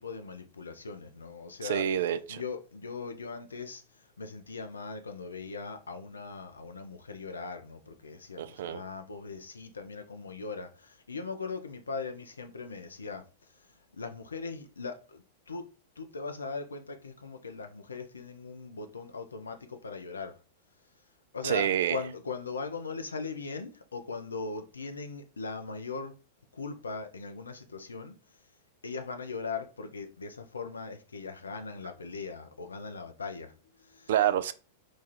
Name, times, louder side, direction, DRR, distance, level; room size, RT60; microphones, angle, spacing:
voice 1, 0.0-1.9 2.3-13.2 13.6-15.7 16.0-20.4 21.3-26.2 26.5-28.2 28.8-34.3, left 4 dB, 75° left, 0.5 m, -40 dB
voice 2, 1.6-2.4 8.4-8.8 21.4-22.0 34.1-34.5, right 10 dB, 60° right, 0.3 m, -27 dB
3.1 x 2.3 x 4.1 m
figure-of-eight pair, 95°, 0 cm